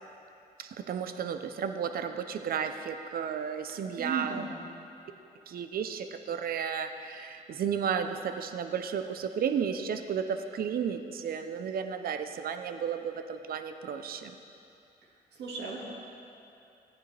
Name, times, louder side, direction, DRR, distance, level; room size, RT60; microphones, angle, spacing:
voice 1, 0.6-4.4 5.5-14.4, right 7 dB, 60° right, 8 dB, 0.6 m, -33 dB
voice 2, 3.8-4.6 15.0-15.9, right 5 dB, 80° right, -3 dB, 2.1 m, -37 dB
14.5 x 9.5 x 3.3 m, 2.6 s
cardioid pair, 80°, 17 cm